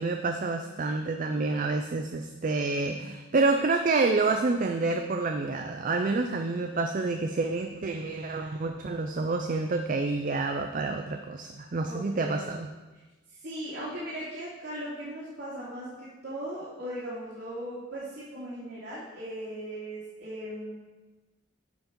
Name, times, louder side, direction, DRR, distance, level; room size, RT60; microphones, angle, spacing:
voice 1, 0.0-12.7, right 3 dB, 45° right, 5 dB, 0.4 m, -28 dB
voice 2, 11.9-12.4 13.4-20.7, right 1 dB, 70° right, -10 dB, 2.6 m, -38 dB
9.2 x 4.9 x 5.1 m, 1.2 s
head